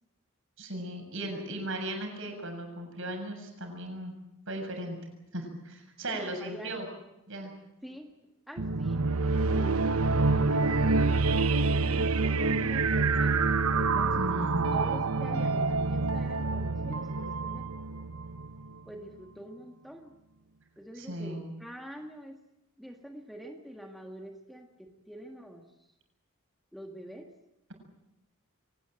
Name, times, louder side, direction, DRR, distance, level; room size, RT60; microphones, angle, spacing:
voice 1, 0.6-4.2 4.5-5.0 5.3-6.8 7.3-7.5 13.9-14.8 21.0-21.5, right 1 dB, 60° right, 4 dB, 7.2 m, -37 dB
voice 2, 6.1-6.8 7.8-8.1 8.5-11.2 11.5-14.4 14.7-17.7 18.9-20.2 20.8-22.4 22.8-25.9 26.7-27.3, right 1 dB, ahead, 3 dB, 1.8 m, -46 dB
sound 1, 8.6-18.8, right 3 dB, 80° right, 1.0 m, -27 dB
24.0 x 19.5 x 8.9 m, 0.89 s
head